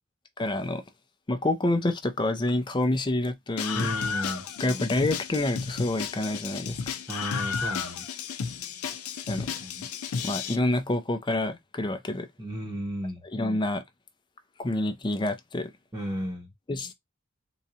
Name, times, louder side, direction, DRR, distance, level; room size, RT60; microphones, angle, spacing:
voice 1, 0.4-0.8 1.3-3.9 4.6-6.8 9.3-9.5 10.2-12.3 13.3-13.8 14.6-15.7 16.7-16.9, left 2 dB, 20° left, 0.5 m, -27 dB
Screaming, 3.6-10.6, left 6 dB, 90° left, 0.5 m, -33 dB
voice 2, 3.7-4.4 7.1-8.0 9.3-9.9 12.4-13.2 15.9-16.5, equal, 20° right, 0.8 m, -34 dB
3.8 x 2.2 x 2.7 m
head